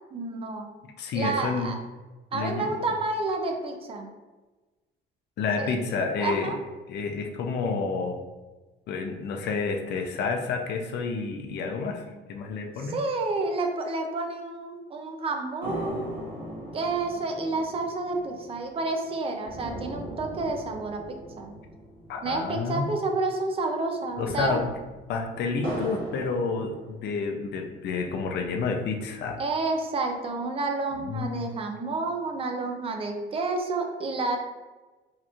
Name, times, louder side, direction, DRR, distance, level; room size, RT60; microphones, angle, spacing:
voice 1, 0.1-0.7 1.1-1.8 2.3-4.1 5.6-5.8 6.2-6.6 12.8-16.2 16.7-21.5 22.2-24.6 29.4-34.4, right 3 dB, 25° right, 3 dB, 0.4 m, -30 dB
voice 2, 1.0-1.7 2.3-2.7 5.4-6.6 6.9-8.2 8.9-12.0 12.3-13.0 22.1-22.9 24.2-24.6 25.1-29.4 30.9-31.5, left 4 dB, 55° left, 4 dB, 0.5 m, -29 dB
sound 1, 15.6-23.2 23.5-23.6 24.0-27.4 27.9-28.9, right 1 dB, 55° right, 1.4 m, -40 dB
4.2 x 3.0 x 2.4 m, 1.2 s
cardioid pair, 180°, 21 cm